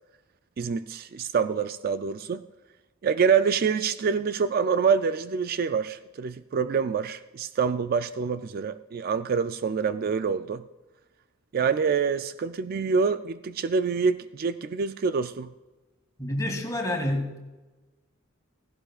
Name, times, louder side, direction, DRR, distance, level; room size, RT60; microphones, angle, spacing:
voice 1, 0.6-2.4 3.0-10.6 11.5-15.5, right 6 dB, 45° right, 0.4 m, -26 dB
voice 2, 16.2-17.4, left 1 dB, 15° left, 2.1 m, -28 dB
16.0 x 16.0 x 2.4 m
head